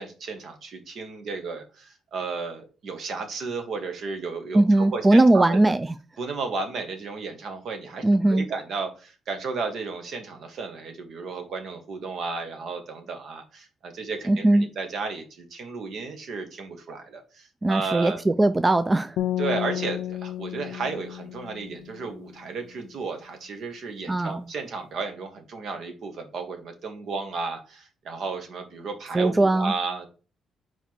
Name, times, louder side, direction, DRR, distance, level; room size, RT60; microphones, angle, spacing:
voice 1, 0.0-5.7 6.2-18.2 19.4-30.1, right 4 dB, 65° right, 1.5 m, -33 dB
voice 2, 4.5-5.9 8.0-8.5 14.3-14.7 17.6-19.2 24.1-24.4 29.1-29.7, right 2 dB, 20° right, 0.3 m, -20 dB
sound 1, 19.2-22.4, left 12 dB, 80° left, 0.4 m, -32 dB
4.5 x 4.5 x 4.6 m
cardioid pair, 90°, 0 cm